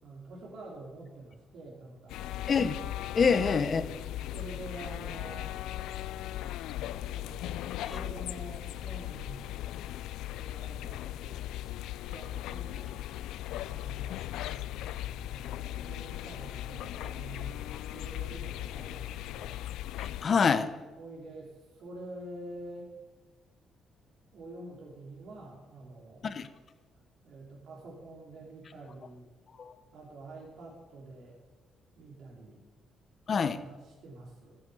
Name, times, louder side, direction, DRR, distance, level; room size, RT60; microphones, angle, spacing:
voice 1, 0.0-2.4 3.3-3.4 4.3-5.5 7.0-7.6 7.9-9.5 10.4-11.4 12.1-12.9 13.5-17.6 17.9-19.6 21.0-22.9 24.3-26.3 27.2-29.3 29.9-31.3 32.0-32.6 33.6-34.6, right 2 dB, 70° right, -3 dB, 3.1 m, -47 dB
sound 1, 2.1-20.3, left 13 dB, 90° left, 0.3 m, -38 dB
voice 2, 3.1-3.8 20.2-20.7 26.2-26.5 29.6-29.7 33.3-33.6, left 5 dB, 45° left, 12 dB, 1.0 m, -25 dB
14.0 x 9.3 x 7.0 m, 1.3 s
cardioid pair, 90°, 0 cm